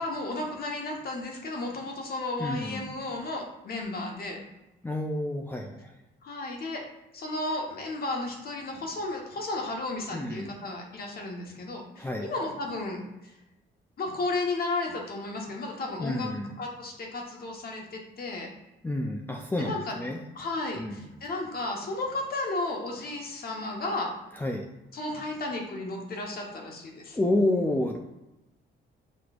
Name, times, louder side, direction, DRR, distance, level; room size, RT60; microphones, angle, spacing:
voice 1, 0.0-4.4 6.2-6.8 7.1-13.3 14.0-16.3 16.6-18.5 19.6-20.0 20.3-24.1 24.9-27.2, left 2 dB, 50° left, 1 dB, 1.1 m, -33 dB
voice 2, 2.4-3.0 4.8-6.0 10.1-10.6 12.0-12.3 16.0-16.6 18.8-20.2 20.8-21.0 24.3-24.7 27.1-28.0, left 1 dB, 10° left, 1 dB, 0.4 m, -29 dB
6.0 x 3.1 x 2.5 m, 0.95 s
cardioid pair, 90°, 20 cm